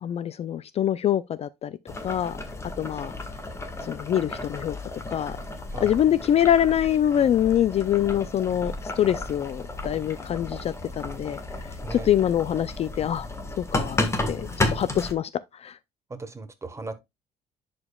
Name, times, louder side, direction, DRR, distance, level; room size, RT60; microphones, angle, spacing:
voice 1, 0.0-2.4 2.8-3.1 3.8-4.8 5.1-5.4 5.8-11.4 11.9-13.3 13.6-14.0 14.3-15.3 15.6-15.8, left 10 dB, 40° left, 0.4 m, -24 dB
Boiling, 1.9-15.1, left 2 dB, 15° left, 1.3 m, -33 dB
voice 2, 5.7-6.0 11.8-12.1 16.1-16.9, right 3 dB, 15° right, 1.1 m, -37 dB
10.5 x 5.1 x 2.3 m
cardioid pair, 135°, 16 cm